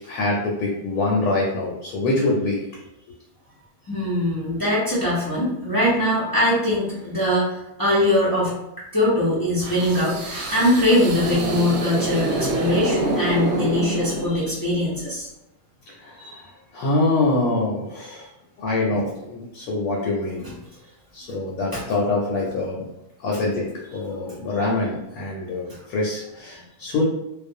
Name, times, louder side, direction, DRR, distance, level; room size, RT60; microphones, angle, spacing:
voice 1, 0.1-2.6 16.0-16.5 16.7-18.3 18.6-20.4 21.1-22.8 23.2-27.0, left 2 dB, 75° left, -2 dB, 1.0 m, -24 dB
voice 2, 3.9-8.6 8.9-15.3 16.2-16.4 20.4-20.5 21.7-21.8 25.7-25.8, left 1 dB, 35° left, -9 dB, 0.3 m, -22 dB
sound 1, 9.6-14.7, right 2 dB, 90° right, 1.1 m, -26 dB
2.4 x 2.1 x 2.6 m, 0.88 s
omnidirectional pair, 1.5 m